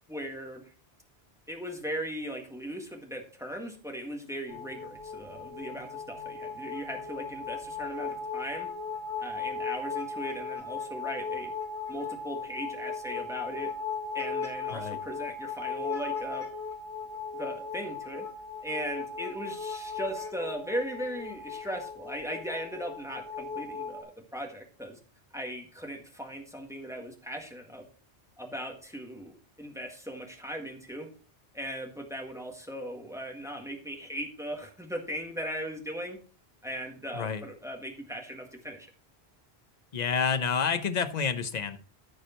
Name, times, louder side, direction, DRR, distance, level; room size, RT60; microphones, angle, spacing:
voice 1, 0.1-0.7 1.5-8.7 9.2-11.5 11.9-13.7 14.1-16.4 17.3-18.2 18.6-25.0 25.3-27.8 28.4-31.1 31.5-36.2 36.6-38.9, equal, 5° right, 2 dB, 1.7 m, -38 dB
sound 1, 4.5-24.0, left 5 dB, 70° left, 3.0 m, -37 dB
voice 2, 39.9-41.8, left 6 dB, 45° left, 10 dB, 0.9 m, -29 dB
14.0 x 4.9 x 4.4 m, 0.40 s
omnidirectional pair, 1.1 m